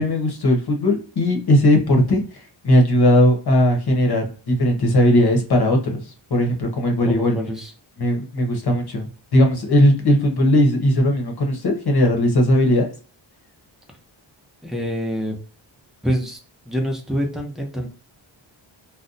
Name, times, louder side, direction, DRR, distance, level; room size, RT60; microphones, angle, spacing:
voice 1, 0.0-7.4 8.0-12.9, left 1 dB, 50° left, 3 dB, 1.0 m, -18 dB
voice 2, 7.0-7.7 14.6-15.4 16.0-16.4 16.7-17.9, equal, ahead, 2 dB, 0.6 m, -26 dB
2.6 x 2.1 x 3.9 m, 0.37 s
wide cardioid pair, 115°, 49 cm